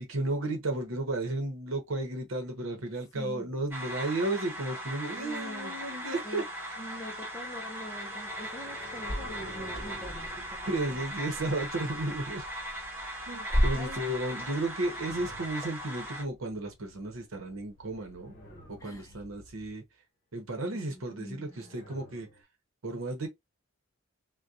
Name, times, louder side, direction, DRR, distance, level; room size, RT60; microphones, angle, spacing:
voice 1, 0.0-6.4 10.7-12.4 13.3-18.3 18.7-19.8 20.3-22.3 22.8-23.3, right 2 dB, 70° right, 0.8 m, -33 dB
voice 2, 3.1-3.5 5.1-5.7 6.2-6.4 6.8-11.0 13.7-14.4 18.8-19.2 20.7-21.8, equal, 15° left, 0.4 m, -44 dB
sound 1, 3.7-16.2, right 1 dB, 10° right, 1.1 m, -39 dB
sound 2, 6.7-12.3 14.3-16.2 17.7-19.3 21.1-22.4, left 1 dB, 45° left, 0.9 m, -52 dB
sound 3, 9.0-19.7, equal, 30° right, 1.4 m, -38 dB
2.7 x 2.2 x 2.3 m
head